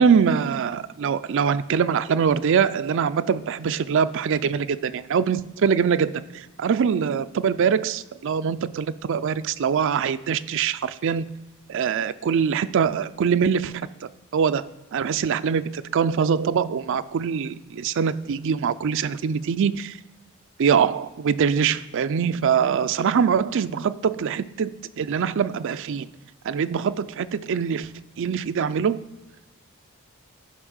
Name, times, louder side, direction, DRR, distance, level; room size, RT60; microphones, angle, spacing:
voice 1, 0.0-11.3 11.7-20.0 20.6-26.1 26.4-27.9 28.2-29.0, right 6 dB, 60° right, 13 dB, 0.4 m, -23 dB
11.0 x 5.3 x 6.4 m, 1.0 s
head